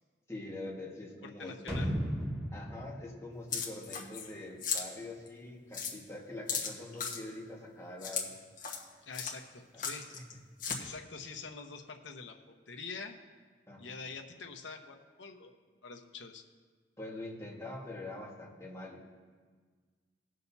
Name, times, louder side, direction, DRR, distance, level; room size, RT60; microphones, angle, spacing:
voice 1, 0.3-1.8 2.5-8.3 9.7-9.8 10.1-10.2 13.7-13.9 17.0-19.0, left 2 dB, 15° left, -4 dB, 1.7 m, -44 dB
voice 2, 1.4-1.9 9.0-10.1 10.8-12.4 12.7-13.2 13.8-15.5 15.8-16.4, left 4 dB, 80° left, 4 dB, 0.9 m, -45 dB
sound 1, 1.7-4.5 4.8-4.9, equal, 15° right, 1.5 m, -36 dB
sound 2, 3.5-4.3 4.6-4.8 5.3-5.4 5.7-5.9 6.5-7.2 8.0-8.2 8.6-8.8 9.1-9.3 9.8-10.3 10.6-10.8, left 6 dB, 50° left, 1.3 m, -35 dB
19.0 x 6.4 x 2.8 m, 1.5 s
head